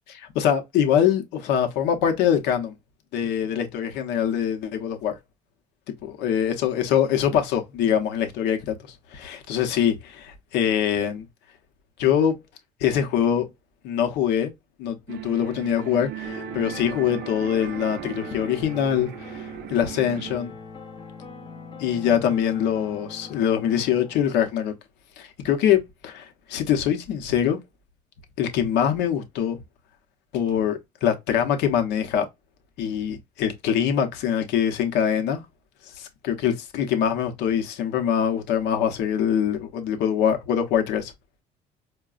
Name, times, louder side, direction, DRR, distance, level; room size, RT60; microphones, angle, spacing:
voice 1, 0.1-2.7 3.1-5.2 6.0-8.7 9.1-11.3 12.0-12.4 12.8-13.5 13.8-14.5 14.8-20.5 21.8-24.7 25.2-27.6 28.4-29.6 30.3-32.3 32.8-35.4 36.0-41.1, left 9 dB, 90° left, 0.8 m, -23 dB
sound 1, 15.1-20.4, right 12 dB, 70° right, 0.4 m, -37 dB
sound 2, 16.2-24.3, left 4 dB, 30° left, 0.7 m, -42 dB
4.6 x 2.2 x 2.4 m
cardioid pair, 110°, 17 cm